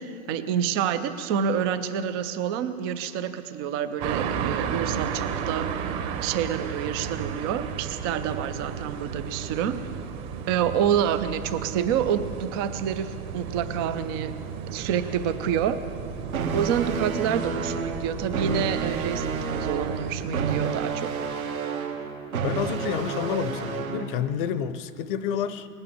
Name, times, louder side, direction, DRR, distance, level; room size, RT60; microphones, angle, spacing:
voice 1, 0.0-5.7 6.2-9.8 10.5-14.3 14.7-15.8 16.5-21.2, right 8 dB, 20° right, 11 dB, 0.4 m, -28 dB
sound 1, 4.0-20.5, right 7 dB, 35° right, 1.2 m, -34 dB
sound 2, 16.3-24.3, right 5 dB, 70° right, 1.6 m, -30 dB
voice 2, 22.4-25.7, left 8 dB, 35° left, 14 dB, 0.7 m, -29 dB
19.5 x 8.8 x 7.5 m, 2.5 s
figure-of-eight pair, 110°, 44 cm